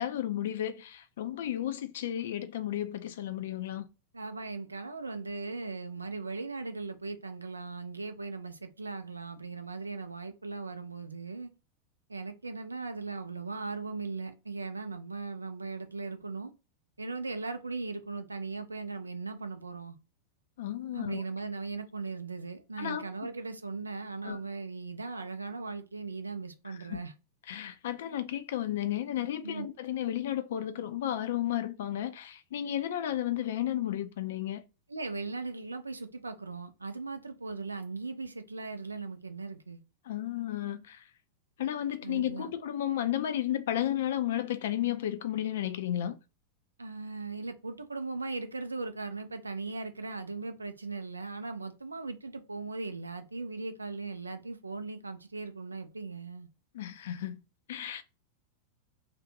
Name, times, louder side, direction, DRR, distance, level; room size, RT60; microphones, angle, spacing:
voice 1, 0.0-3.9 20.6-21.2 22.8-23.1 24.2-24.4 26.7-27.0 27.5-34.6 40.1-41.1 41.6-46.2 56.7-57.4 57.7-58.0, left 11 dB, 60° left, 0.3 m, -33 dB
voice 2, 4.1-11.5 12.1-16.5 17.0-20.0 20.9-27.1 29.4-29.7 34.9-39.8 42.0-42.5 46.8-56.5, right 3 dB, 80° right, 0.4 m, -38 dB
2.5 x 2.1 x 2.7 m
figure-of-eight pair, 90°, 0 cm